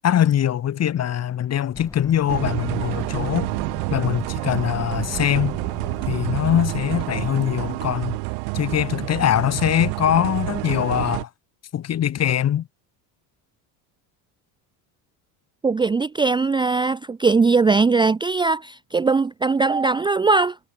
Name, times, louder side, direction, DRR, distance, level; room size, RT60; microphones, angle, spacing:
voice 1, 0.0-3.5 3.9-5.6 6.1-8.2 8.5-11.3 11.7-12.7, left 10 dB, 35° left, 2.3 m, -22 dB
sound 1, 1.7-6.7, left 2 dB, 5° left, 6.9 m, -39 dB
sound 2, 2.3-11.2, right 39 dB, 80° right, 2.2 m, -28 dB
voice 2, 15.6-20.6, right 4 dB, 10° right, 0.6 m, -20 dB
cardioid pair, 130°, 45 cm